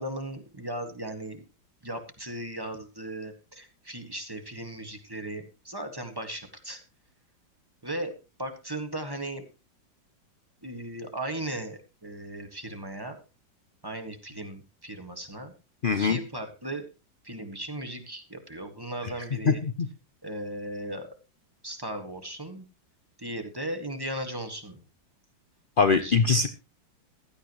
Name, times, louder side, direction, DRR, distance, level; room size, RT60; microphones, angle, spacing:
voice 1, 0.0-1.4 1.8-6.8 7.8-8.1 8.4-9.4 10.6-13.2 13.8-15.5 15.9-16.8 17.2-19.6 20.2-21.1 21.6-22.6 23.2-24.8 25.9-26.4, right 1 dB, 10° right, 6 dB, 1.7 m, -37 dB
voice 2, 15.8-16.2 19.5-19.7 25.8-26.5, left 5 dB, 60° left, 9 dB, 0.5 m, -22 dB
15.5 x 13.0 x 3.1 m, 0.30 s
omnidirectional pair, 2.1 m